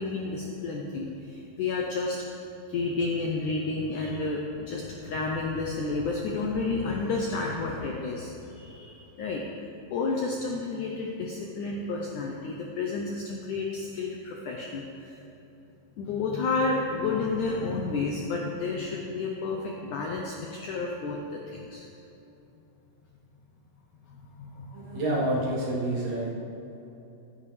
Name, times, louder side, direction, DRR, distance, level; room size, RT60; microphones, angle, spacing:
voice 1, 0.0-2.4 2.7-15.2 16.0-21.9 24.1-25.0, left 3 dB, 75° left, 0 dB, 1.8 m, -31 dB
voice 2, 24.7-26.3, right 1 dB, 55° right, -5 dB, 2.8 m, -28 dB
15.0 x 10.5 x 3.4 m, 3.0 s
omnidirectional pair, 4.5 m